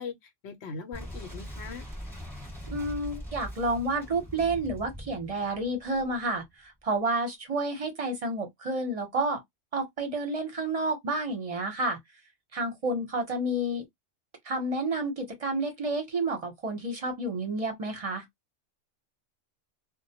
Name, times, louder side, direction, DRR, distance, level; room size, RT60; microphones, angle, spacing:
voice 1, 0.0-1.8, left 5 dB, 65° left, 0.9 m, -40 dB
Boom, 0.9-6.5, equal, ahead, 1.1 m, -42 dB
voice 2, 2.7-9.4 9.7-12.0 12.5-13.9 14.4-18.3, right 2 dB, 35° right, 0.8 m, -30 dB
2.1 x 2.1 x 2.7 m
omnidirectional pair, 1.3 m